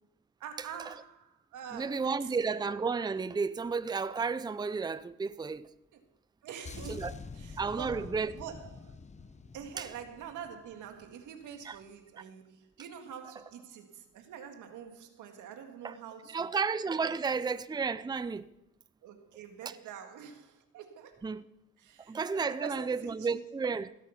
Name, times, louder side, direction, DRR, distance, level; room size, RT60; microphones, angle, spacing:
voice 1, 0.4-2.4 5.9-6.0 6.4-9.0 9.5-16.5 17.0-17.1 19.0-21.3 21.8-23.4, right 8 dB, 85° right, 1.9 m, -46 dB
voice 2, 1.7-5.7 6.9-7.1 7.6-8.3 9.8-9.9 11.6-11.8 15.8-15.9 16.3-18.5 21.2-21.4 22.1-24.0, right 5 dB, 15° right, 0.5 m, -32 dB
sound 1, 6.6-11.2 11.5-11.8, left 4 dB, 25° left, 0.7 m, -47 dB
16.5 x 8.5 x 5.8 m
cardioid pair, 90°, 30 cm